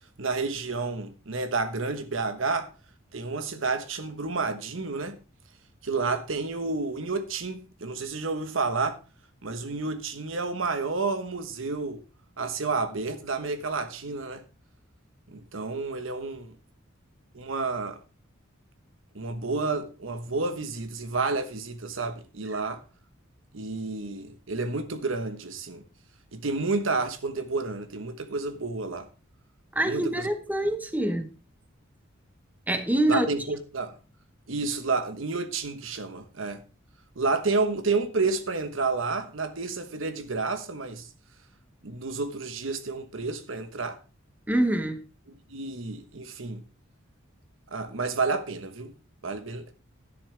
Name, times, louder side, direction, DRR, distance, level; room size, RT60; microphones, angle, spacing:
voice 1, 0.2-2.7 3.1-5.2 5.8-9.0 9.4-12.0 12.4-14.4 15.3-16.5 17.3-18.0 19.1-22.8 23.5-25.8 26.3-29.1 29.8-30.3 33.1-34.0 34.5-36.6 37.2-41.1 41.8-44.0 45.5-46.6 47.7-48.9 49.2-49.7, right 3 dB, 70° right, 1.2 m, -30 dB
voice 2, 29.7-31.3 32.7-33.3 44.5-45.0, right 1 dB, 10° right, 1.1 m, -25 dB
12.0 x 10.0 x 3.3 m
head